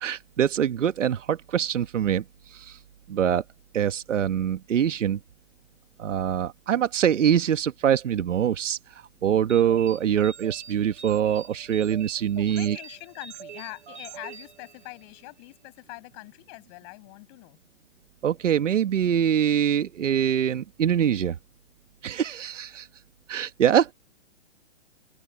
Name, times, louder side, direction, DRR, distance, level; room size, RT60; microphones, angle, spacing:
voice 1, 0.0-2.8 3.1-3.4 3.7-5.2 6.0-12.8 18.2-21.4 22.0-22.9 23.3-23.9, right 9 dB, 90° right, 1.3 m, -24 dB
sound 1, 9.5-15.3, right 7 dB, 60° right, 4.0 m, -45 dB
voice 2, 12.4-17.6, left 32 dB, 25° left, 7.9 m, -43 dB
hypercardioid pair, 170°, 36 cm